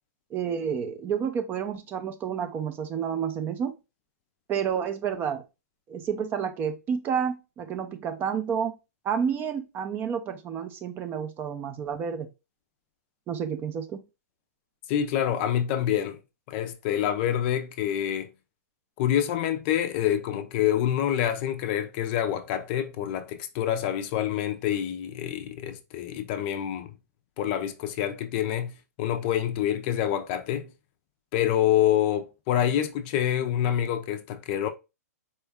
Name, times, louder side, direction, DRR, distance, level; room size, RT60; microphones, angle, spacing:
voice 1, 0.3-3.7 4.5-5.4 5.9-8.7 9.0-12.3 13.3-14.0, right 7 dB, 20° right, 0.5 m, -30 dB
voice 2, 14.9-16.2 16.5-18.3 19.0-26.9 27.4-28.7 29.0-30.7 31.3-34.7, left 10 dB, 35° left, 0.5 m, -27 dB
4.3 x 2.3 x 3.4 m
hypercardioid pair, 135°, 9 cm